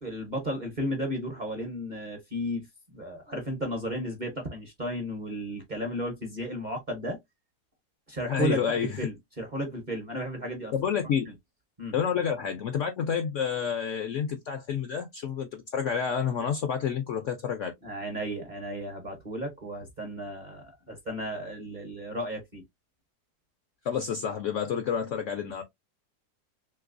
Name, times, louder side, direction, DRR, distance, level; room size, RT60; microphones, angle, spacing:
voice 1, 0.0-7.2 8.1-10.7 11.0-11.3 11.8-11.9 17.8-22.6, equal, 40° right, 0.7 m, -34 dB
voice 2, 8.3-9.0 10.7-11.2 11.9-17.7 23.8-25.6, left 7 dB, 70° left, 0.7 m, -29 dB
3.2 x 2.9 x 2.4 m
omnidirectional pair, 1.7 m